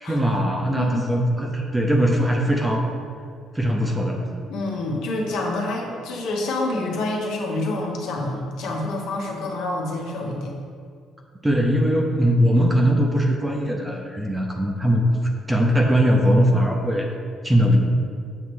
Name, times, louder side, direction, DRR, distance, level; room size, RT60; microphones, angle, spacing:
voice 1, 0.0-2.8 3.5-4.2 11.4-15.0 15.5-17.1 17.4-17.8, equal, 10° right, 1 dB, 0.6 m, -20 dB
voice 2, 0.8-1.2 4.5-10.5, left 2 dB, 70° left, -1 dB, 1.2 m, -27 dB
7.4 x 3.1 x 6.1 m, 2.2 s
cardioid pair, 170°, 0 cm